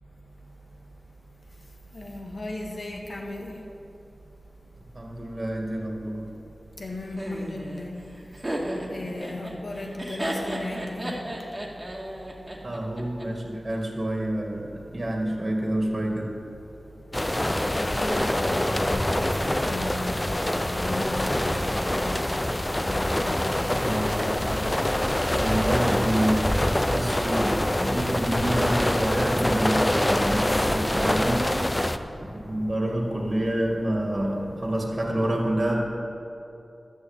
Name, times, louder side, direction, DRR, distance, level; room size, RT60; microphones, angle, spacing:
voice 1, 1.9-3.7 6.8-8.0 8.9-11.1 17.7-22.3 22.8-23.8 31.4-32.6 34.0-34.1 35.3-35.4, left 1 dB, 60° left, 0 dB, 2.0 m, -37 dB
voice 2, 4.9-6.3 12.6-16.3 23.8-24.7 25.3-31.5 32.5-35.9, right 1 dB, 45° right, 0 dB, 2.2 m, -28 dB
Laughter, 7.2-13.2, right 1 dB, 25° right, 2.1 m, -33 dB
sound 1, 17.1-32.0, left 1 dB, 20° left, 0.6 m, -25 dB
12.0 x 7.0 x 8.2 m, 2.8 s
cardioid pair, 50°, 0 cm